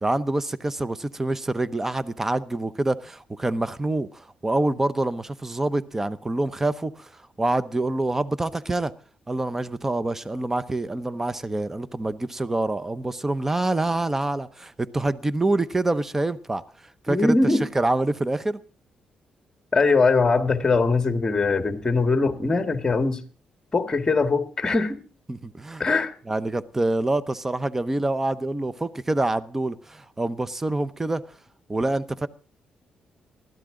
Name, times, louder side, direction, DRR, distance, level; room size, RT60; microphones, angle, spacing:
voice 1, 0.0-8.9 9.3-16.6 17.0-18.6 25.3-25.8 26.3-31.2 31.7-32.3, right 2 dB, 15° right, 0.8 m, -26 dB
voice 2, 17.1-17.7 19.7-23.2 23.7-25.0 25.8-26.1, left 3 dB, 25° left, 1.7 m, -21 dB
20.0 x 13.5 x 3.8 m
cardioid pair, 105°, 2 cm